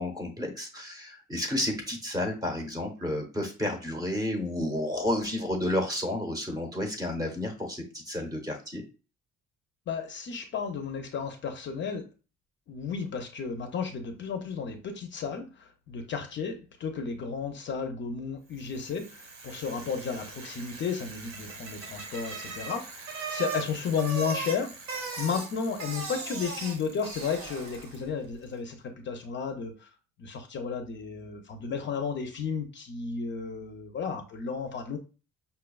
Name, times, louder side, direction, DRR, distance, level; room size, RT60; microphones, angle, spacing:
voice 1, 0.0-8.8, left 1 dB, 15° right, 4 dB, 0.7 m, -31 dB
voice 2, 9.9-12.0 12.7-24.7 25.2-28.8 29.0-29.9 30.2-35.0, left 6 dB, 40° left, 5 dB, 0.5 m, -33 dB
Bicycle, 18.7-28.1, right 4 dB, 70° right, 1.1 m, -39 dB
5.4 x 2.2 x 2.3 m, 0.33 s
cardioid pair, 145°, 29 cm